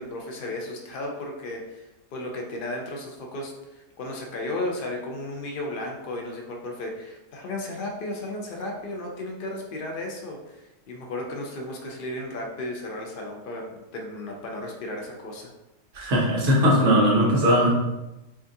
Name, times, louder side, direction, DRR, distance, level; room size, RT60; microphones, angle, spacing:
voice 1, 0.0-15.5, left 1 dB, 85° left, 1 dB, 0.4 m, -34 dB
voice 2, 15.9-17.7, equal, 55° right, -4 dB, 1.2 m, -19 dB
4.8 x 2.5 x 2.6 m, 0.98 s
omnidirectional pair, 1.6 m